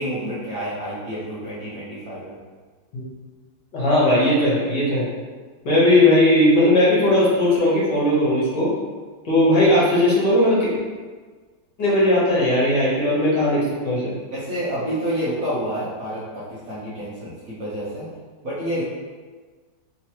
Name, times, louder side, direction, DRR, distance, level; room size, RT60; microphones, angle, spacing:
voice 1, 0.0-2.4 14.3-18.1 18.4-18.8, equal, 55° right, -10 dB, 1.1 m, -29 dB
voice 2, 3.7-5.1 5.7-8.7 9.3-10.7 11.8-14.1, left 1 dB, 65° left, -7 dB, 1.7 m, -18 dB
3.7 x 3.0 x 2.9 m, 1.4 s
omnidirectional pair, 2.1 m